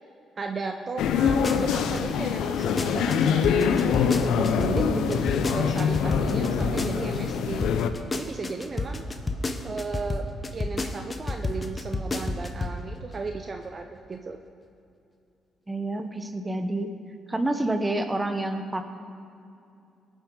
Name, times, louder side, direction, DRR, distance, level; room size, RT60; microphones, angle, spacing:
voice 1, 0.4-7.6 8.1-9.0 9.6-10.3 10.5-14.4, right 4 dB, 40° right, 5 dB, 0.6 m, -35 dB
sound 1, 1.0-7.9, left 7 dB, 80° left, 0.6 m, -24 dB
sound 2, 1.3-2.0 2.4-7.4 7.6-12.8 13.1-13.2, left 3 dB, 30° left, 0.9 m, -30 dB
sound 3, 6.0-9.6, right 2 dB, 85° right, 2.8 m, -45 dB
voice 2, 15.7-16.9 17.3-18.9, right 1 dB, 15° right, 7 dB, 1.0 m, -28 dB
18.0 x 7.4 x 3.8 m, 2.5 s
cardioid pair, 80°, 0 cm